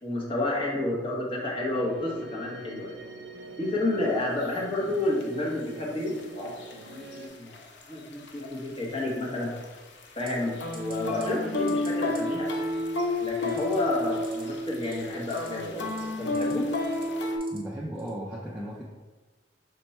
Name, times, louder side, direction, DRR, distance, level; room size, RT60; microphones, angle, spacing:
voice 1, 0.0-3.1 3.6-9.5 10.1-12.5 13.2-15.9 16.2-16.7, left 2 dB, 30° left, -4 dB, 1.0 m, -30 dB
sound 1, 1.7-7.3, right 2 dB, 65° right, 0.5 m, -43 dB
sound 2, 4.4-4.5 5.2-5.3 6.1-7.3 7.5-7.8 8.1-9.7 10.0-17.4, left 2 dB, 70° left, 0.6 m, -31 dB
sound 3, 10.3-10.5 10.7-10.9 11.2-11.4 11.7-11.9 12.1-12.2 13.4-13.7 14.1-14.4 14.8-15.5 15.8-16.5 16.9-17.6 18.0-18.2, right 3 dB, 30° right, 0.8 m, -46 dB
voice 2, 17.5-18.8, equal, 10° right, -5 dB, 0.4 m, -36 dB
5.1 x 2.2 x 4.1 m, 1.3 s
head